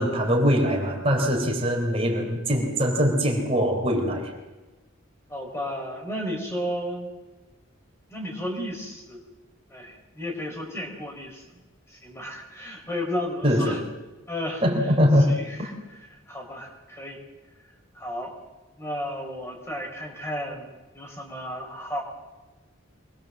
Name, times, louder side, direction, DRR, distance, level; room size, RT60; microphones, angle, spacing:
voice 1, 0.0-4.3 13.4-13.8 14.6-15.7, equal, 30° right, 1 dB, 3.9 m, -22 dB
voice 2, 5.3-7.1 8.1-9.2 9.7-11.4 11.9-13.8 14.3-14.6 15.2-15.7 16.3-17.2 17.9-18.3 18.8-22.0, equal, 15° left, 1 dB, 4.4 m, -33 dB
24.5 x 21.5 x 7.6 m, 1.1 s
head